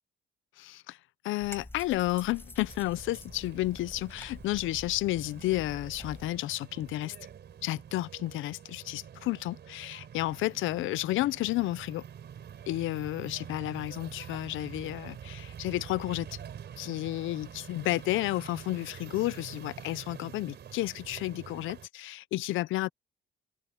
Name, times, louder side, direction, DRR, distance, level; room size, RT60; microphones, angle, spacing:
voice 1, 0.6-1.0 1.2-7.2 7.6-12.0 12.7-16.4 16.8-22.9, left 17 dB, 90° left, 0.6 m, -32 dB
sound 1, 1.4-6.4, left 1 dB, 10° left, 7.6 m, -48 dB
sound 2, 2.7-21.9, right 8 dB, 60° right, 4.4 m, -46 dB
open air
cardioid pair, 90°, 20 cm